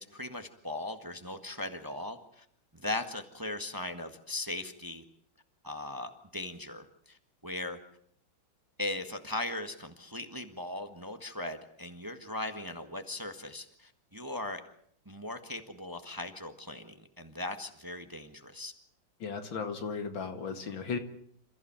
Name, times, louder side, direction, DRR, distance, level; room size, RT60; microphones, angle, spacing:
voice 1, 0.1-2.4 2.7-5.0 5.6-7.2 7.4-7.8 8.8-14.6 15.0-18.7, left 2 dB, 10° right, 8 dB, 1.5 m, -38 dB
voice 2, 19.2-21.0, left 5 dB, 75° left, 7 dB, 2.9 m, -35 dB
28.0 x 15.0 x 8.9 m, 0.66 s
omnidirectional pair, 2.1 m